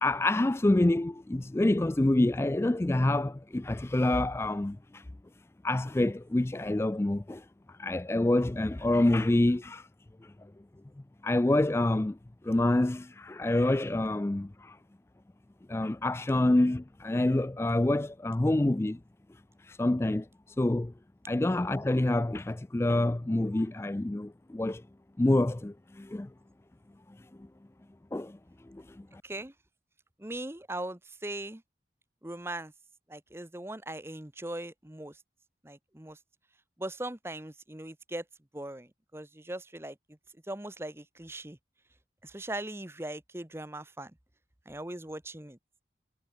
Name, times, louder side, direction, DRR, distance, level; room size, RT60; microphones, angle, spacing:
voice 1, 0.0-5.0 5.6-9.9 11.2-12.2 12.4-14.8 15.7-19.0 19.6-20.9 21.3-24.8 25.2-26.3 28.1-28.4 28.7-28.8, left 1 dB, 15° left, 0.3 m, -27 dB
voice 2, 29.2-29.5 30.2-31.6 32.2-32.7 33.1-35.2 35.6-36.2 36.8-38.2 38.5-40.0 40.5-41.6 42.2-44.1 44.7-45.6, right 1 dB, 15° right, 1.0 m, -39 dB
head